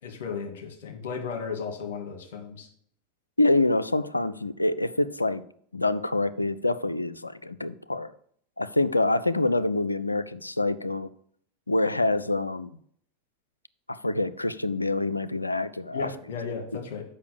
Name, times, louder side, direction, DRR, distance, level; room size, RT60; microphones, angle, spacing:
voice 1, 0.0-2.7 15.9-17.0, left 5 dB, 60° left, 1.9 m, -35 dB
voice 2, 3.4-5.4 5.7-8.1 8.6-11.1 11.7-12.8 13.9-16.1 16.7-16.8, left 2 dB, 90° left, 0.4 m, -26 dB
6.7 x 5.5 x 6.7 m
figure-of-eight pair, 85°, 0 cm